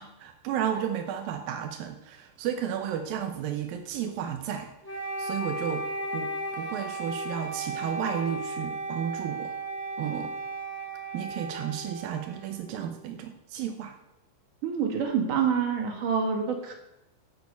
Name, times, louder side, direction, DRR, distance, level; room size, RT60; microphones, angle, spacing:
voice 1, 0.0-5.8 6.1-9.5 10.0-10.3 11.1-14.0, right 9 dB, 80° right, 5 dB, 2.1 m, -33 dB
Wind instrument woodwind instrument, 4.8-12.9, right 2 dB, 5° left, 1.9 m, -35 dB
voice 2, 14.6-16.7, right 6 dB, 55° right, 2 dB, 3.0 m, -27 dB
10.5 x 7.3 x 8.2 m, 0.88 s
omnidirectional pair, 5.3 m